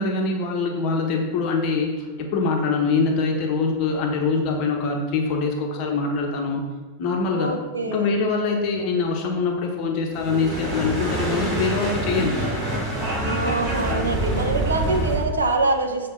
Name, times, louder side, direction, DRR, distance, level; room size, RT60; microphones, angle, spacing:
voice 1, 0.0-6.6 7.0-7.6 7.9-12.3, left 4 dB, 40° left, 1 dB, 0.9 m, -24 dB
voice 2, 7.3-8.1 13.2-16.1, right 2 dB, 75° right, 4 dB, 0.8 m, -24 dB
sound 1, 10.1-15.3, right 1 dB, 25° right, 2.3 m, -26 dB
7.4 x 3.4 x 5.7 m, 1.3 s
figure-of-eight pair, 90°, 0 cm